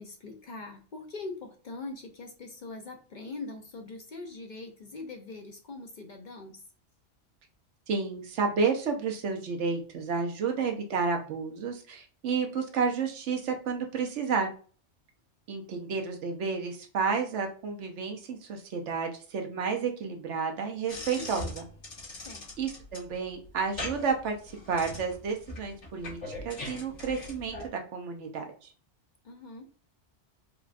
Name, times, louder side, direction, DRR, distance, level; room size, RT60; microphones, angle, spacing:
voice 1, 0.0-6.6 22.2-22.5 29.2-29.6, left 3 dB, 50° left, 4 dB, 0.6 m, -42 dB
voice 2, 7.9-14.5 15.5-21.7 22.6-28.7, right 5 dB, 85° right, 4 dB, 1.1 m, -31 dB
sound 1, 20.9-27.7, left 2 dB, 75° left, 2.0 m, -41 dB
4.8 x 2.3 x 2.4 m, 0.39 s
omnidirectional pair, 1.2 m